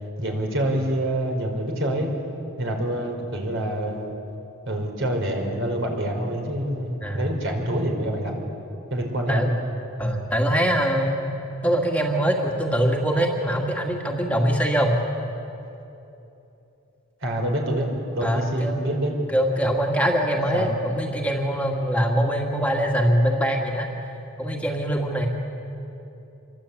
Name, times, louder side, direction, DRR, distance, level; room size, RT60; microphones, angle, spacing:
voice 1, 0.2-2.1 2.6-4.1 4.7-8.4 8.9-9.5 17.2-17.9 18.1-19.1 20.5-20.8, right 1 dB, 60° right, 2 dB, 4.7 m, -26 dB
voice 2, 10.0-11.3 11.6-15.0 18.2-19.0 19.3-23.9 24.4-25.3, equal, 5° left, 0 dB, 2.1 m, -23 dB
27.5 x 23.5 x 8.6 m, 2.9 s
head